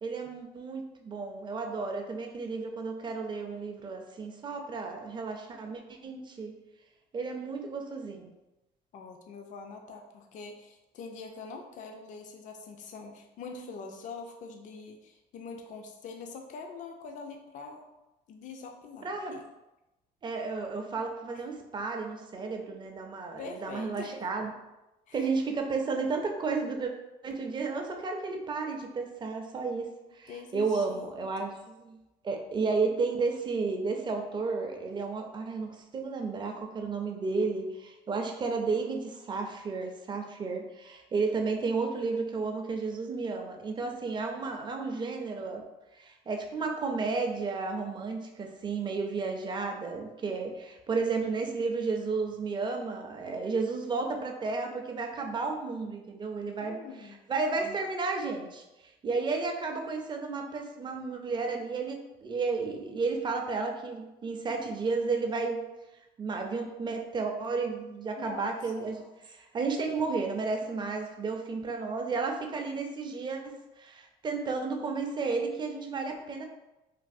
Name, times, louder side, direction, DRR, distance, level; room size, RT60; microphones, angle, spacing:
voice 1, 0.0-6.5 7.1-8.3 19.0-19.4 20.2-24.5 25.1-26.9 27.2-32.0 32.2-45.6 45.9-56.8 57.3-65.6 66.2-76.5, right 4 dB, 25° right, 3 dB, 0.4 m, -32 dB
voice 2, 8.9-17.9 18.3-19.4 21.3-21.4 23.4-24.1 25.1-25.3 30.3-31.1 31.4-31.5 56.6-57.2 68.2-68.9, left 4 dB, 50° left, 3 dB, 0.4 m, -44 dB
3.2 x 2.3 x 2.5 m, 1.0 s
cardioid pair, 110°, 17 cm